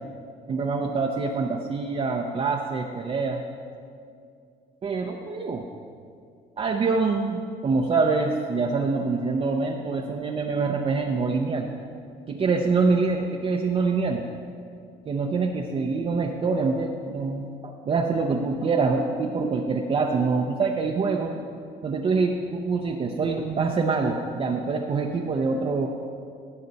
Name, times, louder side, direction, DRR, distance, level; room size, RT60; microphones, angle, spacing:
voice 1, 0.5-3.4 4.8-5.7 6.6-11.7 12.3-14.3 15.1-21.3 21.8-25.9, right 4 dB, 35° right, 1 dB, 0.7 m, -25 dB
16.5 x 6.6 x 4.1 m, 2.3 s
cardioid pair, 110°, 17 cm